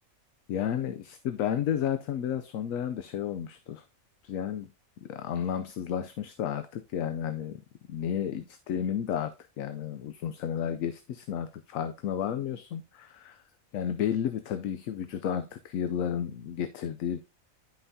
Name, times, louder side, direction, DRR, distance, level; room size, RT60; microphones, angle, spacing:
voice 1, 0.5-3.8 4.2-4.7 5.0-7.6 7.9-13.4 13.7-17.2, left 9 dB, 75° left, 1.0 m, -32 dB
10.0 x 5.6 x 2.7 m
omnidirectional pair, 1.5 m